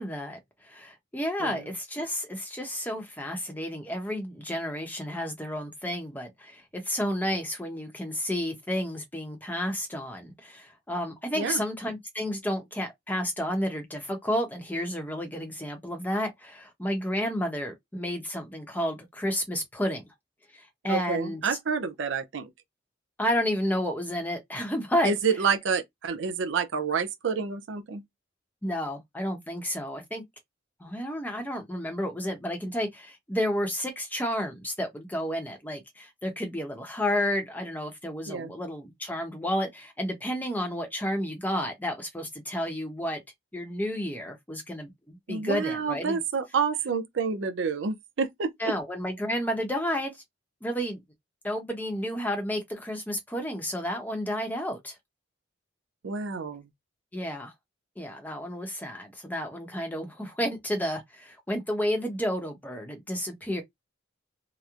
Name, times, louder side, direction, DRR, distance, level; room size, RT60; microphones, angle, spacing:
voice 1, 0.0-20.1 20.5-21.4 23.2-25.1 28.6-30.2 30.8-43.2 43.5-46.2 48.6-50.2 50.6-51.0 51.4-54.9 57.1-57.5 58.0-63.6, equal, 10° left, 0.7 m, -31 dB
voice 2, 20.9-22.5 25.0-28.0 38.3-38.5 45.3-48.7 56.0-56.7, right 5 dB, 70° right, 0.5 m, -29 dB
2.9 x 2.0 x 2.4 m
head